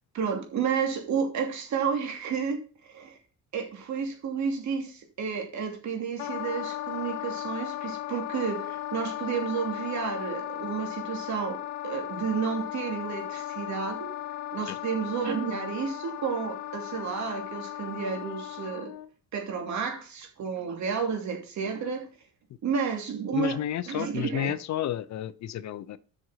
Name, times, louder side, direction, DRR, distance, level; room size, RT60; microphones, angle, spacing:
voice 1, 0.1-3.2 3.5-11.6 11.8-14.1 14.5-18.9 19.3-22.1 22.6-23.6 23.9-24.5, right 6 dB, 60° right, 2.8 m, -31 dB
Wind instrument woodwind instrument, 6.2-19.1, left 14 dB, 80° left, 1.2 m, -36 dB
voice 2, 23.3-26.0, left 11 dB, 55° left, 0.7 m, -31 dB
7.8 x 6.3 x 5.7 m
cardioid pair, 105°, 33 cm